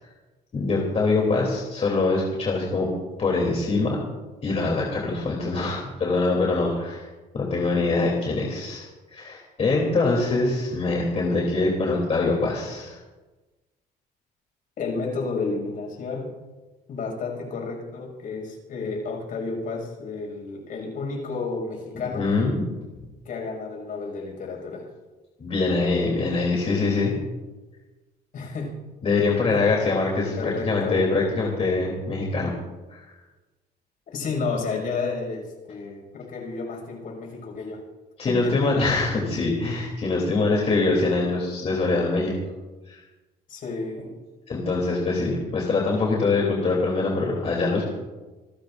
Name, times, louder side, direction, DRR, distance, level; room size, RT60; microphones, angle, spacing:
voice 1, 0.5-2.9 3.2-4.0 4.4-7.1 7.3-13.0 22.1-22.6 25.4-27.2 29.0-32.5 32.9-33.1 38.2-42.3 42.9-43.0 44.5-47.8, left 3 dB, 35° left, -1 dB, 3.3 m, -24 dB
voice 2, 14.8-16.3 16.9-22.3 23.2-24.9 28.3-28.7 29.5-29.6 30.4-31.0 34.1-37.8 38.3-38.7 43.5-44.1, left 4 dB, 55° left, 0 dB, 6.5 m, -31 dB
27.5 x 13.5 x 2.6 m, 1.2 s
cardioid pair, 110°, 17 cm